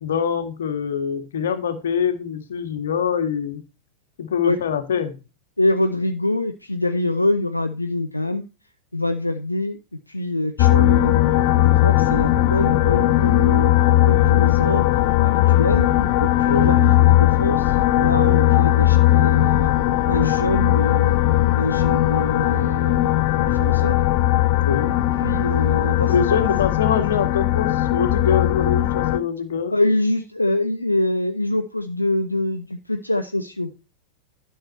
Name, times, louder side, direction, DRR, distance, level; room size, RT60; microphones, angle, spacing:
voice 1, 0.0-3.6 4.2-5.1 16.5-16.8 24.6-24.9 26.1-29.7, left 7 dB, 65° left, 8 dB, 1.7 m, -24 dB
voice 2, 5.6-8.4 8.9-9.8 10.1-11.1 11.6-13.7 14.0-14.8 15.5-15.9 16.2-19.7 20.1-21.2 21.6-23.2 23.5-23.9 25.2-26.5 29.7-33.7, left 1 dB, 85° left, 6 dB, 0.7 m, -24 dB
sound 1, 10.6-29.2, left 14 dB, 45° left, 0.6 m, -18 dB
12.0 x 5.9 x 4.3 m, 0.30 s
figure-of-eight pair, 90°, 0 cm